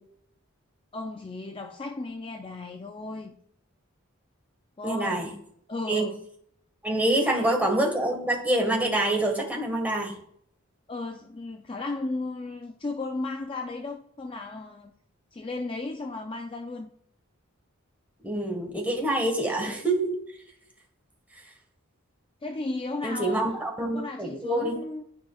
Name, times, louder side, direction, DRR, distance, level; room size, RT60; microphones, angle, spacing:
voice 1, 0.9-3.3 4.8-5.1 5.7-6.2 7.2-7.5 10.9-14.9 15.3-16.9 22.4-23.6 23.9-25.0, left 2 dB, 25° left, 0.4 m, -35 dB
voice 2, 4.8-5.3 5.9-6.1 6.8-10.1 18.2-20.1 21.4-21.5 23.0-24.8, right 1 dB, 5° right, 1.4 m, -26 dB
12.0 x 4.8 x 2.3 m
head